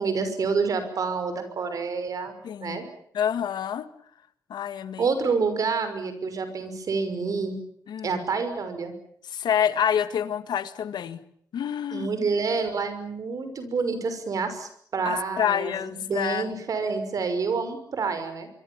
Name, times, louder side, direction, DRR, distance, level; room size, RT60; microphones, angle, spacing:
voice 1, 0.0-2.9 5.0-7.6 8.0-8.9 11.9-18.5, right 4 dB, 55° right, 10 dB, 6.0 m, -28 dB
voice 2, 2.4-2.8 3.1-3.9 4.5-5.1 7.9-8.2 9.3-11.2 11.5-12.3 15.1-16.5, left 9 dB, 80° left, 12 dB, 1.8 m, -27 dB
25.0 x 25.0 x 7.2 m, 0.66 s
wide cardioid pair, 135°, 7 cm